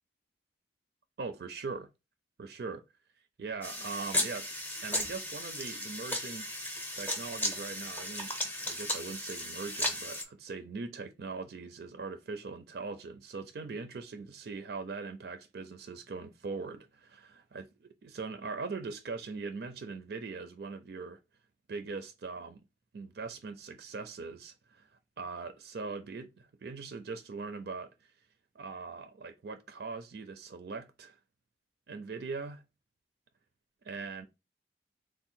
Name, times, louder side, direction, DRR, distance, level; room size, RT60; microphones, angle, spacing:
voice 1, 1.2-1.9 2.4-2.8 3.4-4.5 4.8-6.5 6.9-8.3 8.6-21.2 21.7-22.6 22.9-24.9 25.2-27.9 28.5-31.2 31.9-32.6 33.8-34.3, right 4 dB, 60° right, 0.4 m, -41 dB
sound 1, 3.6-10.2, left 1 dB, 10° left, 0.6 m, -35 dB
3.5 x 2.1 x 4.2 m
head